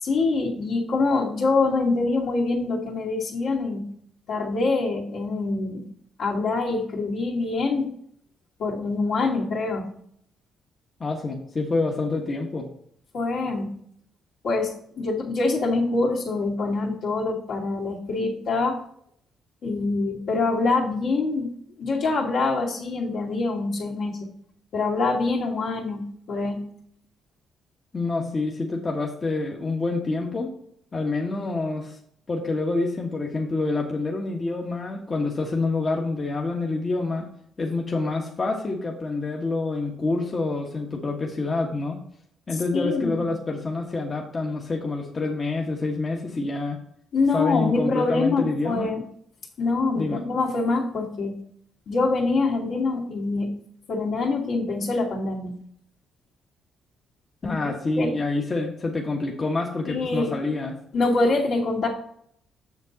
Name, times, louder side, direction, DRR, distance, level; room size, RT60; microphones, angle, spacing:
voice 1, 0.0-3.8 4.3-5.9 6.2-7.9 8.6-9.9 13.1-13.7 14.4-18.8 19.6-21.5 21.8-24.3 24.7-26.0 26.3-26.6 42.5-43.3 47.1-49.0 49.6-51.4 51.9-53.5 53.9-55.6 57.4-57.6 58.0-58.1 59.9-60.4 60.9-61.9, left 3 dB, 65° left, -3 dB, 2.6 m, -25 dB
voice 2, 11.0-12.7 27.9-30.5 30.9-32.0 32.3-37.2 37.6-42.0 42.5-46.8 47.3-48.9 49.9-50.2 57.4-60.7, left 3 dB, 35° left, 0 dB, 1.3 m, -27 dB
7.2 x 6.8 x 4.0 m, 0.66 s
cardioid pair, 90°, 0 cm